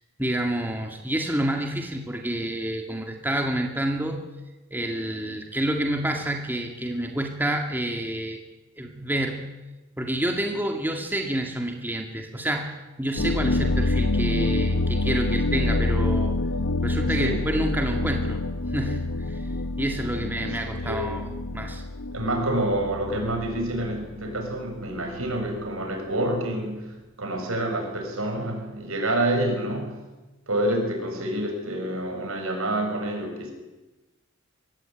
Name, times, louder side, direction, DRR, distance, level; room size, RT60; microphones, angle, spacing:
voice 1, 0.2-4.3 4.7-8.4 8.8-9.5 10.0-16.4 16.8-18.4 18.7-19.5 19.8-21.8, right 1 dB, 10° right, 3 dB, 2.1 m, -28 dB
sound 1, 13.2-25.5, left 2 dB, 85° left, 1.2 m, -27 dB
voice 2, 22.1-30.0 30.5-33.5, right 1 dB, 75° right, 3 dB, 6.7 m, -28 dB
23.5 x 17.5 x 9.2 m, 1.1 s
head